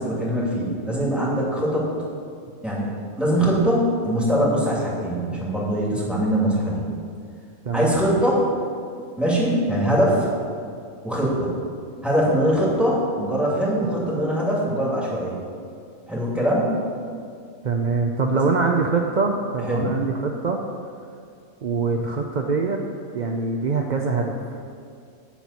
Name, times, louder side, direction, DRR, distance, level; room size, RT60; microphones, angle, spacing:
voice 1, 0.0-1.9 2.6-6.8 7.7-8.4 9.2-10.3 11.0-11.5 12.0-15.4 16.1-16.8 18.3-18.5 19.6-19.9, equal, ahead, -6 dB, 2.7 m, -22 dB
voice 2, 7.6-8.0 17.6-20.6 21.6-22.8 23.1-24.6, right 4 dB, 55° right, 2 dB, 0.5 m, -23 dB
11.5 x 4.5 x 8.2 m, 2.3 s
omnidirectional pair, 1.5 m